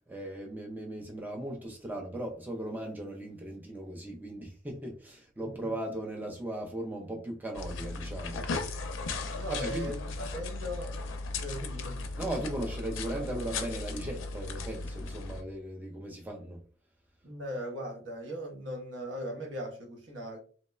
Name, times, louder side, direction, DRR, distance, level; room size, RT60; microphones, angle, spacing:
voice 1, 0.1-8.4 9.5-9.9 12.2-16.6, right 1 dB, 10° right, 0.4 m, -37 dB
sound 1, 7.5-15.4, left 3 dB, 75° left, 0.4 m, -37 dB
voice 2, 9.3-11.0 11.4-12.1 17.2-20.4, equal, 65° right, 0.8 m, -39 dB
2.9 x 2.1 x 2.3 m
head